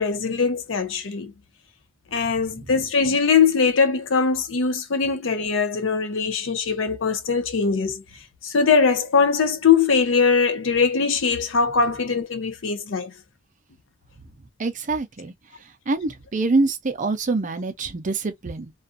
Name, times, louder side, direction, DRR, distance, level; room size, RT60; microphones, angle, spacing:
voice 1, 0.0-1.3 2.1-8.0 8.4-13.1, left 5 dB, 65° left, 0.6 m, -21 dB
voice 2, 14.6-15.3 15.9-18.7, right 3 dB, 40° right, 0.5 m, -25 dB
2.5 x 2.4 x 2.4 m
head